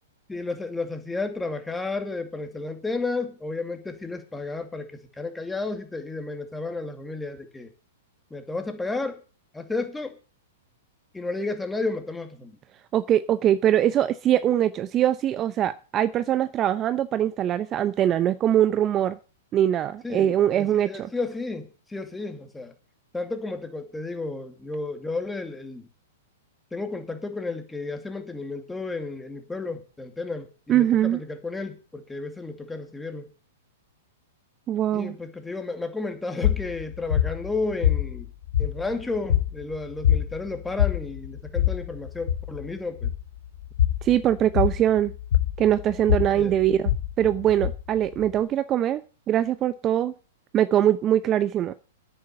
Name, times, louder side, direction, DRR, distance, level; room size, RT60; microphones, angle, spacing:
voice 1, 0.3-7.7 8.3-9.2 9.5-10.2 11.1-12.6 20.0-22.7 23.1-25.9 26.7-33.3 34.9-38.3 38.6-43.1 46.3-46.5, left 3 dB, 10° left, 2.4 m, -32 dB
voice 2, 12.9-19.2 19.5-21.1 30.7-31.2 34.7-35.1 44.0-45.1 45.6-46.9 47.2-49.0 49.3-50.1 50.5-51.7, right 11 dB, 30° right, 0.7 m, -22 dB
sound 1, 36.4-48.4, left 11 dB, 75° left, 2.4 m, -26 dB
9.8 x 8.5 x 7.9 m
hypercardioid pair, 115°, 0 cm